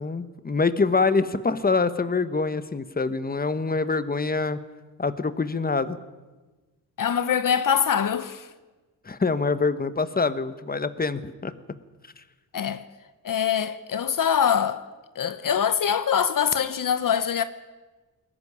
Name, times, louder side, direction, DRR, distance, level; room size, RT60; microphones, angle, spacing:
voice 1, 0.0-4.6 5.0-6.0 9.0-11.5 12.2-12.3, left 4 dB, 25° left, 1.2 m, -25 dB
voice 2, 7.0-8.5 12.5-12.8 13.2-14.8 15.1-17.4, left 8 dB, 65° left, 0.9 m, -23 dB
20.0 x 14.0 x 9.8 m
cardioid pair, 70°, 35 cm